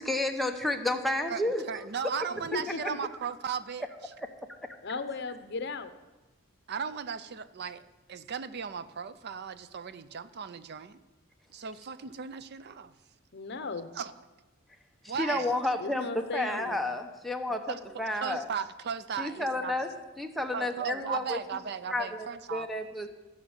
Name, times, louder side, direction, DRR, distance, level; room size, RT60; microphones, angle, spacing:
voice 1, 0.0-1.6 4.9-5.0 15.0-18.4 19.2-19.9 20.2-21.4 21.9-23.1, left 1 dB, ahead, 3 dB, 0.9 m, -31 dB
voice 2, 1.3-3.8 6.7-7.8 8.1-11.0 11.5-12.9 13.9-14.1 15.1-15.5 17.7-17.8 18.2-19.7 20.5-22.7, right 6 dB, 55° right, 14 dB, 0.5 m, -36 dB
voice 3, 2.5-3.0 4.8-5.9 13.3-13.9 15.8-16.9, left 3 dB, 55° left, 10 dB, 0.8 m, -36 dB
13.5 x 6.4 x 7.2 m, 1.1 s
head